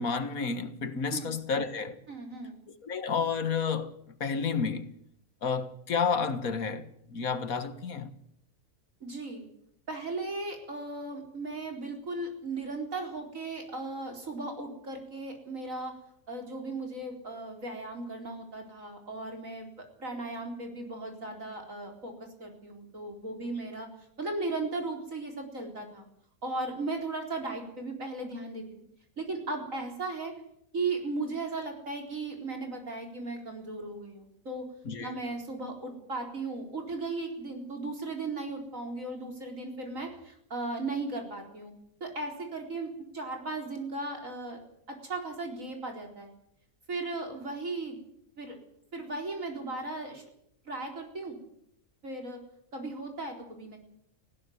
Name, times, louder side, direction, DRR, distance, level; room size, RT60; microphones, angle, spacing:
voice 1, 0.0-2.0 2.8-4.9 5.4-8.2 34.9-35.2, left 5 dB, 75° left, 2.0 m, -31 dB
voice 2, 2.1-2.6 9.0-9.4 9.9-16.0 16.3-23.9 24.2-26.0 26.4-28.6 29.2-30.3 30.7-34.7 35.0-41.7 42.0-44.6 44.9-46.3 46.9-48.0 48.4-48.6 48.9-50.2 50.6-51.4 52.0-52.4 52.7-53.8, right 3 dB, 60° right, 4.6 m, -36 dB
19.0 x 16.0 x 9.4 m
omnidirectional pair, 1.5 m